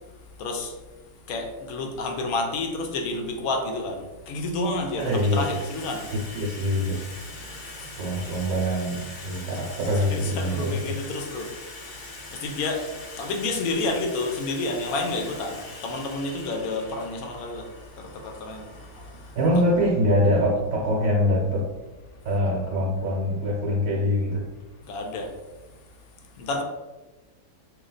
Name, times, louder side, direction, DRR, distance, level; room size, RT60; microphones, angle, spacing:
voice 1, 0.4-0.7 1.3-6.0 7.6-7.9 9.9-11.5 11.8-12.0 12.3-12.9 13.2-17.7 18.0-18.7 24.8-25.3 26.4-26.6, left 2 dB, 70° left, 3 dB, 1.0 m, -30 dB
Water tap faucet / Sink (filling or washing), 4.1-4.3 4.6-22.2, left 2 dB, 45° left, 0.6 m, -43 dB
voice 2, 5.0-5.5 6.1-7.0 8.0-10.9 19.3-21.7 22.2-24.4, equal, 65° right, -4 dB, 1.2 m, -24 dB
3.1 x 2.9 x 3.8 m, 1.2 s
omnidirectional pair, 1.7 m